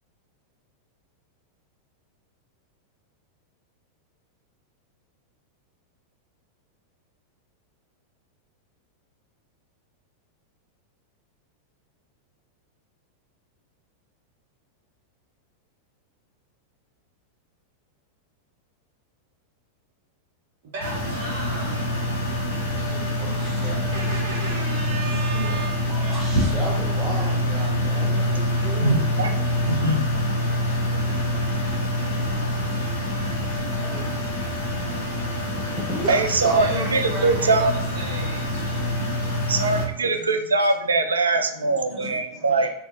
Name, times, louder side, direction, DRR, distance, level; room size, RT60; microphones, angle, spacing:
voice 1, 20.7-21.9 22.8-22.9 23.9-26.0 36.5-38.8 39.1-39.2, right 3 dB, 50° right, -3 dB, 0.7 m, -36 dB
sound 1, 20.8-39.8, left 1 dB, 65° left, 0.8 m, -25 dB
voice 2, 22.9-24.0 25.0-29.1 30.7-31.2 31.8-32.1 33.7-34.2 35.3-37.5 40.0-40.1 41.9-42.5, right 1 dB, 5° right, -5 dB, 0.5 m, -36 dB
voice 3, 28.8-30.0 36.1-37.7 39.5-42.7, right 3 dB, 75° right, 6 dB, 0.3 m, -22 dB
2.4 x 2.4 x 2.5 m, 0.82 s
figure-of-eight pair, 90°, 0 cm